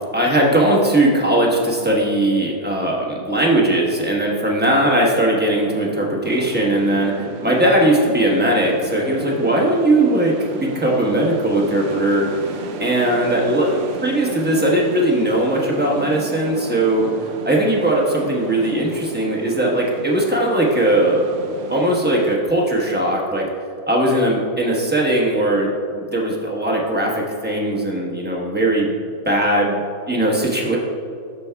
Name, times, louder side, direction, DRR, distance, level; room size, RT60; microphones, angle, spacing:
voice 1, 0.1-12.3 12.8-17.1 17.5-21.3 21.7-23.5 23.9-28.9 29.2-30.8, right 1 dB, 10° right, -3 dB, 0.9 m, -19 dB
sound 1, 6.2-22.4, right 5 dB, 80° right, 0.5 m, -34 dB
11.0 x 6.9 x 2.3 m, 2.6 s
omnidirectional pair, 1.7 m